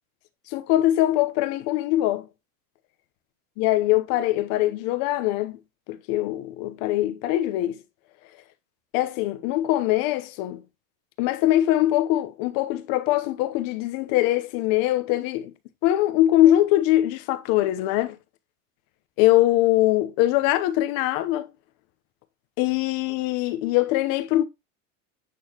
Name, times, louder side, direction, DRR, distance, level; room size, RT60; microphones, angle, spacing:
voice 1, 0.5-2.3 3.6-5.6 5.9-7.8 8.9-10.6 11.2-15.5 15.8-18.2 19.2-21.5 22.6-24.4, left 14 dB, 60° left, 0.9 m, -22 dB
8.6 x 3.9 x 2.9 m
cardioid pair, 150°, 40 cm